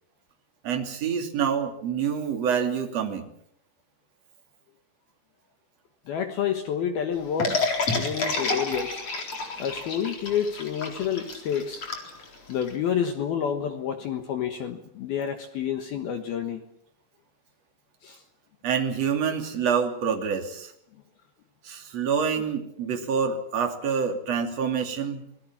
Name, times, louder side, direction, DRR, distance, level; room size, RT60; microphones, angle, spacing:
voice 1, 0.6-3.2 18.6-20.7 21.6-25.2, right 7 dB, 40° right, 4 dB, 3.2 m, -27 dB
voice 2, 6.1-9.0 9.6-11.8 12.5-16.6 18.0-18.2 22.4-22.5, left 8 dB, 65° left, 7 dB, 2.7 m, -29 dB
sound 1, 7.4-12.7, left 3 dB, 35° left, 4.6 m, -29 dB
26.0 x 20.5 x 7.4 m, 0.70 s
omnidirectional pair, 5.6 m